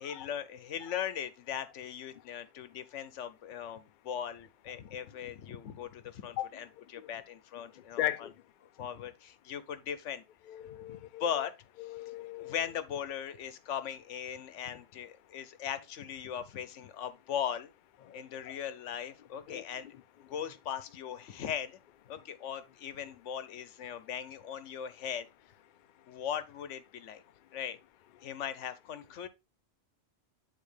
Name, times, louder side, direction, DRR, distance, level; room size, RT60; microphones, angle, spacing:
voice 1, 0.0-8.3 8.8-10.2 10.9-11.5 12.4-17.7 18.1-19.9 20.2-21.7 22.1-25.3 26.1-27.2 27.5-27.8 28.2-29.3, left 9 dB, 80° left, 1.1 m, -39 dB
voice 2, 8.0-8.3 10.5-11.2 11.8-12.6 18.1-18.6 19.5-19.9, left 13 dB, 60° left, 0.5 m, -38 dB
8.5 x 4.0 x 3.3 m
omnidirectional pair, 1.2 m